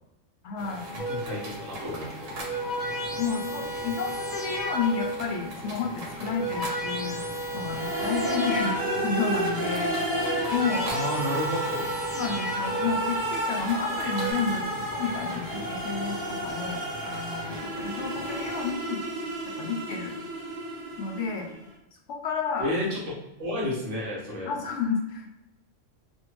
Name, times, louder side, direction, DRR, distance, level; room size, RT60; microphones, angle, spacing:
voice 1, 0.4-0.9 3.1-7.2 7.5-8.8 9.0-9.9 10.5-10.9 12.1-19.1 19.6-20.2 21.0-21.5 22.1-22.7 24.5-25.3, left 5 dB, 70° left, 1 dB, 0.9 m, -31 dB
sound 1, 0.6-18.7, equal, 85° right, 1.2 m, -40 dB
sound 2, 1.0-1.5 2.2-5.4 6.1-9.3 10.0-13.2 13.9-14.3, right 1 dB, 40° left, 0.8 m, -33 dB
voice 2, 1.1-2.3 10.8-11.9 22.6-23.1 23.4-24.5, left 1 dB, 65° right, -5 dB, 1.3 m, -31 dB
sound 3, 7.7-21.6, right 1 dB, 40° right, 0.5 m, -32 dB
3.3 x 2.2 x 2.9 m, 0.93 s
omnidirectional pair, 1.3 m